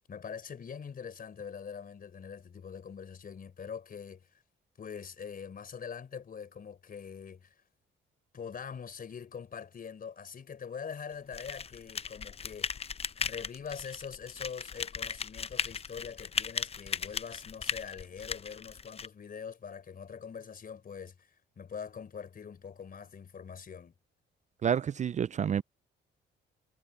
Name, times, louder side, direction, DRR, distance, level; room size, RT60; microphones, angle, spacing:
voice 1, 0.1-4.3 4.8-7.5 8.3-12.8 13.2-21.3 21.6-23.9, left 6 dB, 45° left, 4.3 m, -43 dB
sound 1, 11.3-19.1, left 6 dB, 30° left, 0.6 m, -37 dB
voice 2, 24.6-25.6, right 8 dB, 35° right, 0.4 m, -29 dB
cardioid pair, 90°, 20 cm